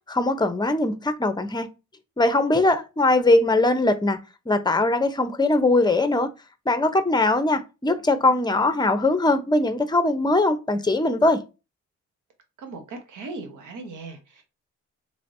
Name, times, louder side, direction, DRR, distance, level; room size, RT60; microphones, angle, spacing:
voice 1, 0.1-1.7 2.2-4.2 4.5-6.3 6.7-11.4, left 2 dB, 15° left, 0.7 m, -21 dB
voice 2, 12.6-14.4, right 3 dB, 80° right, 1.1 m, -38 dB
3.3 x 3.1 x 2.6 m
supercardioid pair, 65°, 31 cm